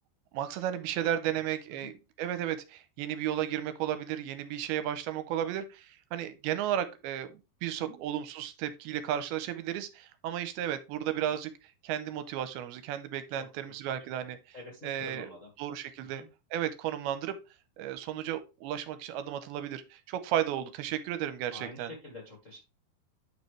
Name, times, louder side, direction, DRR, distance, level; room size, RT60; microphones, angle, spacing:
voice 1, 0.3-14.4 14.8-15.3 15.6-16.2 16.5-17.4 17.8-21.9, right 11 dB, 85° right, 11 dB, 2.5 m, -34 dB
voice 2, 14.5-15.5 16.0-16.3 21.5-22.6, left 2 dB, 90° left, 0 dB, 0.6 m, -47 dB
8.9 x 5.4 x 3.3 m, 0.27 s
omnidirectional pair, 4.7 m